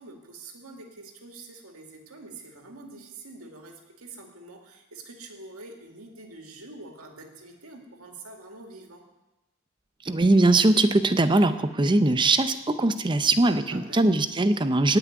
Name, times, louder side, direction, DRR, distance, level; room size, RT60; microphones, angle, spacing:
voice 1, 0.0-9.1 13.5-14.0, right 2 dB, 80° right, 2 dB, 2.3 m, -45 dB
voice 2, 10.1-15.0, right 2 dB, 20° right, 10 dB, 0.6 m, -21 dB
17.5 x 6.0 x 9.4 m, 1.0 s
head